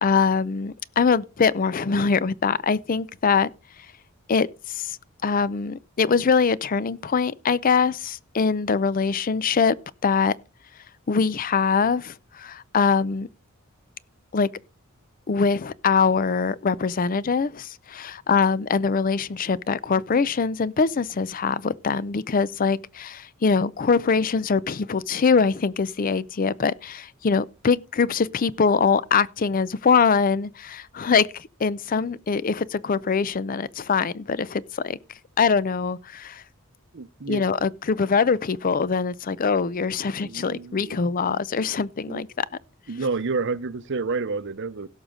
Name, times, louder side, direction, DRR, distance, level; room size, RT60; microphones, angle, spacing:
voice 1, 0.0-3.5 4.3-5.0 5.2-9.7 10.0-10.3 11.1-13.3 14.3-14.5 15.3-35.0 35.4-36.4 37.3-42.5, left 5 dB, 40° left, 0.5 m, -23 dB
voice 2, 36.9-37.4 40.3-41.0 42.1-42.2 42.9-44.9, right 4 dB, 60° right, 0.7 m, -29 dB
17.0 x 6.5 x 3.7 m
head